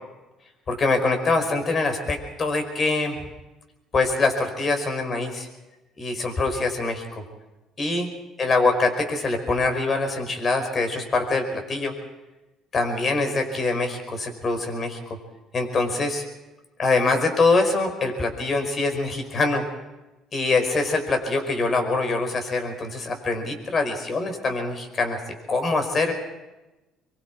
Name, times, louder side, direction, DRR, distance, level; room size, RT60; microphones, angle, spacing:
voice 1, 0.7-3.2 3.9-5.5 6.0-7.2 7.8-8.1 8.4-12.0 12.7-15.2 15.5-16.2 16.8-19.6 20.3-25.2 25.5-26.1, left 3 dB, 40° left, 5 dB, 5.2 m, -24 dB
24.5 x 23.0 x 4.8 m, 1.1 s
hypercardioid pair, 65°, 0 cm